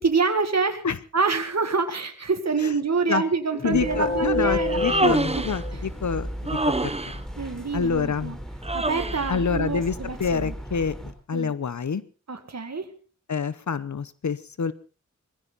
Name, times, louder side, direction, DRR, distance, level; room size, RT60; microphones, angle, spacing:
voice 1, 0.0-0.8 1.1-5.1 5.3-5.4 7.4-8.4 8.7-10.5 11.3-11.5 12.3-12.9, right 4 dB, 60° right, 7 dB, 2.0 m, -26 dB
sound 1, 3.5-6.1, left 3 dB, 30° left, 3.0 m, -28 dB
voice 2, 3.6-7.2 7.7-8.3 9.3-10.9 11.3-12.0 13.3-14.7, left 6 dB, 75° left, 16 dB, 0.9 m, -27 dB
sound 2, 3.7-11.1, equal, ahead, 3.9 m, -36 dB
Human voice, 4.6-5.6 6.5-7.2 8.6-9.3, right 2 dB, 20° right, 1.0 m, -26 dB
21.5 x 15.5 x 4.0 m, 0.35 s
wide cardioid pair, 85°, 29 cm